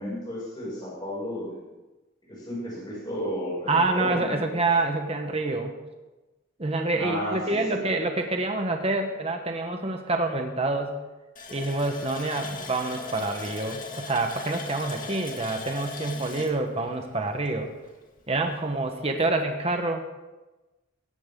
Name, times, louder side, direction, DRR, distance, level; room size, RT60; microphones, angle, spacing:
voice 1, 0.0-1.7 2.3-4.4 6.9-7.8 12.5-12.6, equal, 20° left, -7 dB, 6.6 m, -33 dB
voice 2, 3.7-5.8 6.6-10.9 11.5-17.7 18.3-20.1, right 2 dB, 30° right, 4 dB, 1.2 m, -27 dB
Water tap faucet, 11.4-17.9 18.2-18.3 18.7-18.9, left 4 dB, 40° left, 2.1 m, -39 dB
17.5 x 15.0 x 3.8 m, 1.1 s
head